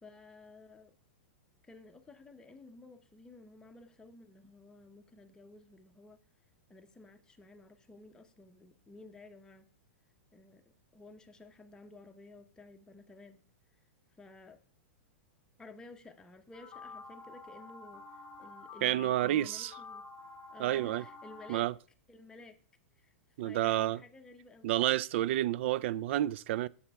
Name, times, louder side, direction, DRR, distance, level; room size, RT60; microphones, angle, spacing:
voice 1, 0.0-1.0 1.6-6.2 6.7-9.7 10.3-10.6 10.9-13.4 14.2-14.6 15.6-20.1 20.5-21.7 22.1-22.6 23.0-23.1 23.4-24.7, left 3 dB, 10° left, 0.8 m, -54 dB
sound 1, 16.5-21.6, left 3 dB, 25° left, 1.1 m, -49 dB
voice 2, 18.8-19.7 20.6-21.0 21.5-21.7 23.4-24.0 24.6-26.7, right 13 dB, 60° right, 0.3 m, -30 dB
7.8 x 7.0 x 3.5 m
hypercardioid pair, 140°, 7 cm